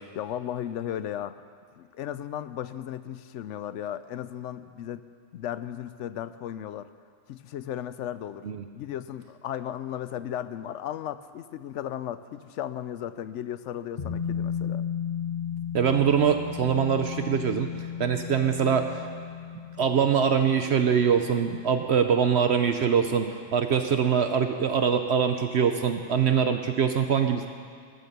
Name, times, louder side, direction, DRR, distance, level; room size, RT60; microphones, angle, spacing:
voice 1, 0.1-1.4 1.8-5.1 5.3-6.9 7.3-8.5 8.7-14.9, left 10 dB, 75° left, 14 dB, 0.9 m, -35 dB
sound 1, 14.0-23.1 23.4-23.5, left 8 dB, 40° left, 0.9 m, -35 dB
voice 2, 15.7-19.0 19.8-27.5, right 7 dB, 65° right, 7 dB, 0.9 m, -23 dB
13.0 x 13.0 x 6.6 m, 2.2 s
omnidirectional pair, 1.3 m